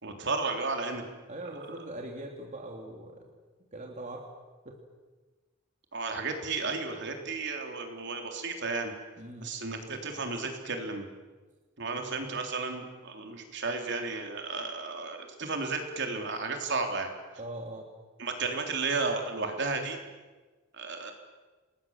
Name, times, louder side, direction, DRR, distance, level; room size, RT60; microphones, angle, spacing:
voice 1, 0.0-1.0 1.7-1.8 5.9-8.9 9.4-11.1 11.8-17.1 18.2-20.0 20.7-21.1, right 3 dB, 55° right, 4 dB, 3.5 m, -33 dB
voice 2, 1.3-3.3 3.7-4.2 4.6-4.8 9.2-9.5 17.4-17.9, right 1 dB, 35° right, 1 dB, 2.7 m, -41 dB
28.5 x 20.0 x 7.4 m, 1.3 s
head